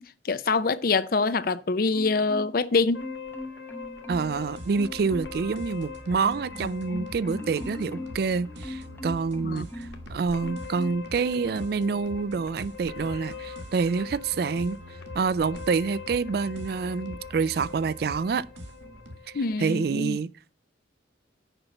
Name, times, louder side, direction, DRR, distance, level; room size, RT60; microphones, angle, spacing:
voice 1, 0.0-3.1 9.4-9.6 19.3-20.2, left 4 dB, 50° left, 0.5 m, -25 dB
Marimba xylophone, 1.9-2.7 3.0-4.4 4.8-5.5 5.9-10.0 10.4-11.1 11.5-11.7, left 1 dB, 10° left, 0.7 m, -40 dB
sound 1, 2.9-20.0, left 6 dB, 70° left, 1.3 m, -43 dB
voice 2, 4.1-14.8 15.1-18.5 19.6-20.5, right 5 dB, 55° right, 0.3 m, -27 dB
sound 2, 4.1-19.2, equal, 80° right, 2.0 m, -44 dB
6.8 x 5.6 x 7.0 m
head